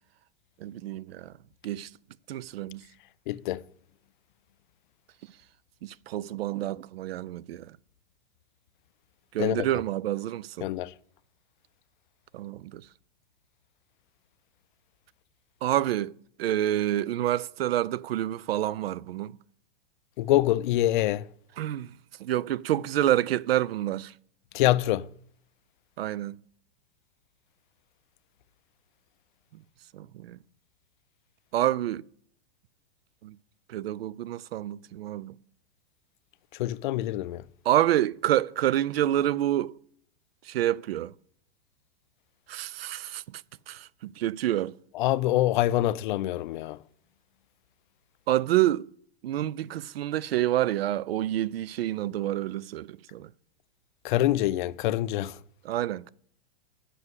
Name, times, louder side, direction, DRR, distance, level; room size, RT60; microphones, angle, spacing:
voice 1, 0.6-1.3 1.6-1.9 2.3-2.8 5.8-7.7 9.3-10.7 12.3-12.8 15.6-16.1 16.4-19.4 21.6-24.1 26.0-26.4 29.5-29.6 29.9-30.4 31.5-32.0 33.2-33.4 33.7-35.4 37.7-39.7 40.4-41.1 42.5-43.4 43.7-44.8 48.3-48.9 49.2-53.3 55.6-56.1, right 13 dB, 85° right, 0.5 m, -28 dB
voice 2, 3.3-3.6 9.4-9.7 10.6-10.9 20.2-21.3 24.5-25.1 36.5-37.4 44.9-46.8 54.0-55.4, left 14 dB, 55° left, 0.5 m, -25 dB
7.5 x 6.2 x 8.0 m
hypercardioid pair, 130°, 29 cm